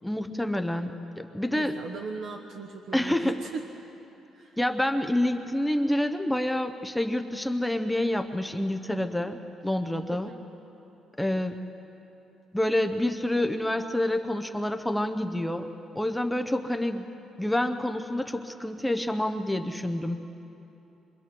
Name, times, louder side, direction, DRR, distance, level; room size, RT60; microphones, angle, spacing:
voice 1, 0.0-1.8 2.9-3.4 4.6-9.4 9.6-10.3 11.2-11.6 12.5-15.7 15.9-17.1 17.4-20.2, left 1 dB, 5° left, 6 dB, 0.6 m, -28 dB
voice 2, 1.5-3.6 4.3-4.6 10.1-10.3, right 4 dB, 60° right, 0 dB, 1.2 m, -39 dB
27.0 x 25.0 x 4.5 m, 3.0 s
cardioid pair, 175°, 0 cm